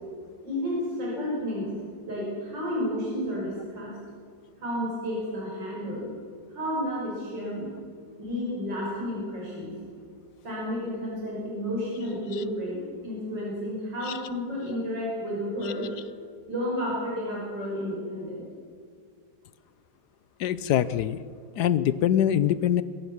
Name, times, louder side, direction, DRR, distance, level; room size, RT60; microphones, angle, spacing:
voice 1, 0.4-1.7 2.1-4.0 4.6-6.1 6.5-7.7 8.2-9.7 10.4-15.9 16.5-18.4, equal, 85° right, -4 dB, 6.1 m, -31 dB
voice 2, 20.4-21.2 21.6-22.8, left 10 dB, 70° left, 16 dB, 1.2 m, -23 dB
21.5 x 17.0 x 7.3 m, 2.1 s
omnidirectional pair, 1.9 m